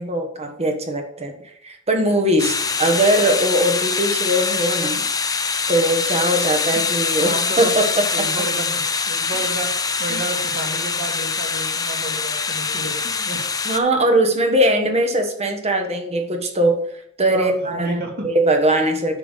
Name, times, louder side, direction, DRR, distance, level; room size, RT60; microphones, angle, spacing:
voice 1, 0.0-5.0 5.7-8.3 10.1-10.2 13.6-19.2, right 1 dB, 30° right, 5 dB, 1.3 m, -20 dB
sound 1, 2.4-13.8, left 5 dB, 15° left, 0.6 m, -23 dB
voice 2, 7.2-7.7 8.1-9.7 10.0-13.4 17.3-18.3, right 2 dB, 45° right, 1 dB, 2.2 m, -31 dB
9.6 x 6.7 x 3.6 m, 0.73 s
head